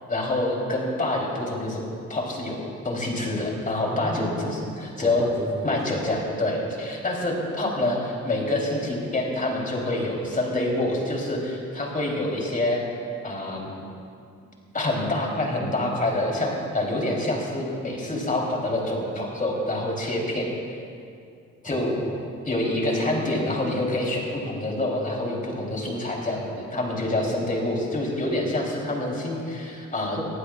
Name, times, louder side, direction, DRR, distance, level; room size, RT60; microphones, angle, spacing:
voice 1, 0.1-1.8 2.1-5.2 5.6-12.8 13.2-13.7 14.7-20.5 21.6-21.9 22.5-30.2, left 1 dB, 25° left, -1 dB, 3.4 m, -26 dB
voice 2, 3.8-4.7 5.0-6.0 21.6-22.2 30.1-30.2, right 1 dB, 10° right, -2 dB, 1.4 m, -35 dB
21.0 x 15.0 x 2.4 m, 2.4 s
cardioid pair, 90°, 30 cm